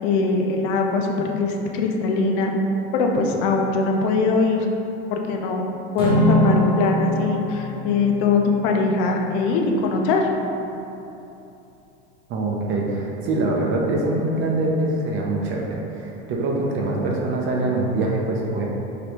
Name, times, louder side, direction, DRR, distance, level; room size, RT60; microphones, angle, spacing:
voice 1, 0.0-2.5 2.9-4.7 5.1-5.7 5.9-10.3, left 4 dB, 65° left, 2 dB, 0.6 m, -21 dB
Acoustic guitar / Strum, 6.0-10.4, right 1 dB, 20° right, 1.3 m, -25 dB
voice 2, 12.3-18.6, right 2 dB, 45° right, -2 dB, 0.7 m, -24 dB
4.9 x 3.3 x 3.0 m, 2.9 s
supercardioid pair, 140°, 29 cm